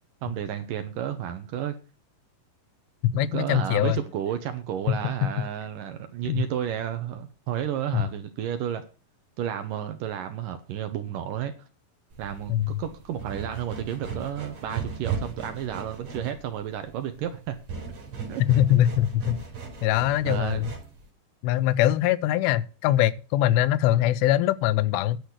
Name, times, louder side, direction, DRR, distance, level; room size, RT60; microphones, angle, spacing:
voice 1, 0.2-1.8 3.1-8.8 9.4-11.5 12.2-17.6 18.3-18.8 20.2-20.7, right 10 dB, 70° right, 2.2 m, -32 dB
voice 2, 3.1-4.0 4.9-5.0 6.3-6.4 7.9-8.0 12.5-12.8 18.5-19.4 19.8-20.7 21.4-25.2, left 13 dB, 85° left, 2.9 m, -22 dB
sound 1, 12.1-21.1, right 6 dB, 45° right, 4.5 m, -37 dB
10.5 x 6.4 x 8.1 m
omnidirectional pair, 4.8 m